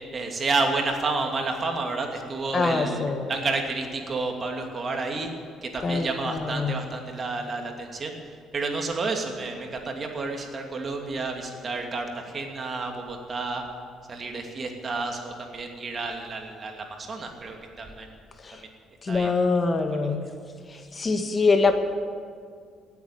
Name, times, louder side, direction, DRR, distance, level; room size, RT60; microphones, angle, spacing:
voice 1, 0.1-5.3 5.6-8.2 8.5-13.6 14.1-18.1 19.1-19.3, right 3 dB, 45° right, 3 dB, 2.7 m, -30 dB
voice 2, 2.5-3.4 5.8-6.7 18.4-18.6 19.0-20.2 20.7-21.7, left 4 dB, 35° left, 6 dB, 1.7 m, -24 dB
17.5 x 8.4 x 9.2 m, 2.1 s
hypercardioid pair, 55°, 0 cm